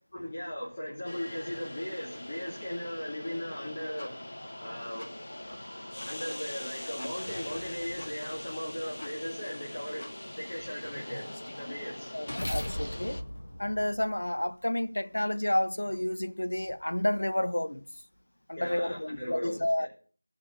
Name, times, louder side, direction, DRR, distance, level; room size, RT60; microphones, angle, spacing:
voice 1, 0.1-4.3 4.6-5.6 6.0-10.1 10.4-12.1 18.6-19.9, equal, 25° left, 3.3 m, -38 dB
sound 1, 1.0-13.2, left 1 dB, 70° left, 1.4 m, -42 dB
sound 2, 4.0-4.1 5.0-5.1 6.0-6.1 7.0-7.1 8.0-8.1 9.0-9.1 10.0-10.1 10.7-14.6, left 1 dB, 45° left, 2.2 m, -39 dB
voice 2, 12.1-13.2 13.6-17.8 18.5-19.9, left 1 dB, 90° left, 1.1 m, -30 dB
17.0 x 6.2 x 7.6 m
figure-of-eight pair, 180°, 0 cm